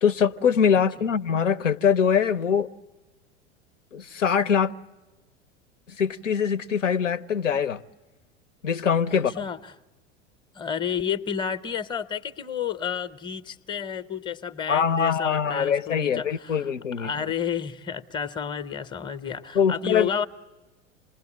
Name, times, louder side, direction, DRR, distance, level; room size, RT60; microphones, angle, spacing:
voice 1, 0.0-2.7 3.9-4.7 6.0-7.8 8.6-9.3 14.7-17.1 19.5-20.1, left 7 dB, 80° left, 0.7 m, -23 dB
voice 2, 9.3-9.7 10.5-16.7 17.0-20.3, left 7 dB, 10° left, 0.7 m, -31 dB
27.0 x 20.0 x 7.3 m
figure-of-eight pair, 90°, 37 cm